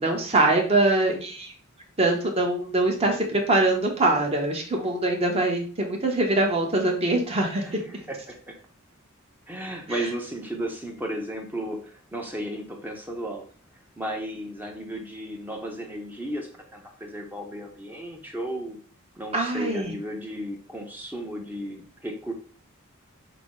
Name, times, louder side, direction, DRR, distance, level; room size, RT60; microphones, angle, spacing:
voice 1, 0.0-1.5 2.0-7.8 19.3-19.9, right 2 dB, 30° right, 1 dB, 0.9 m, -23 dB
voice 2, 7.6-8.6 9.5-13.4 13.7-18.8 19.1-22.3, right 1 dB, 10° right, 1 dB, 0.6 m, -34 dB
5.8 x 2.0 x 3.7 m, 0.42 s
head